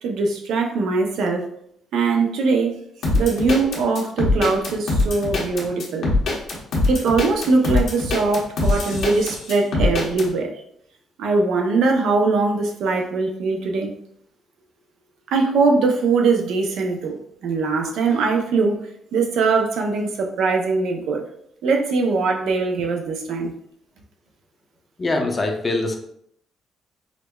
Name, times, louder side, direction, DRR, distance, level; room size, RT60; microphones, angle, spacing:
voice 1, 0.0-1.4 1.9-2.7 3.1-6.0 6.9-10.5 11.2-13.9 15.3-18.7 19.1-21.2 21.6-23.5, right 4 dB, 80° right, 2 dB, 0.5 m, -21 dB
sound 1, 3.0-10.3, left 2 dB, 70° left, 0.9 m, -22 dB
voice 2, 25.0-25.9, left 2 dB, 30° left, 3 dB, 0.6 m, -23 dB
4.9 x 2.1 x 2.2 m, 0.70 s
cardioid pair, 90°, 0 cm